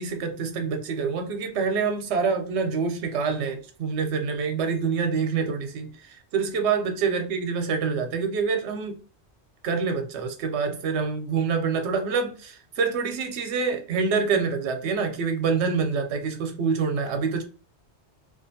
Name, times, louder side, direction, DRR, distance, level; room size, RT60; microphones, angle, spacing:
voice 1, 0.0-9.0 9.6-17.4, right 5 dB, 85° right, 0.9 m, -26 dB
2.5 x 2.4 x 2.6 m
omnidirectional pair, 1.1 m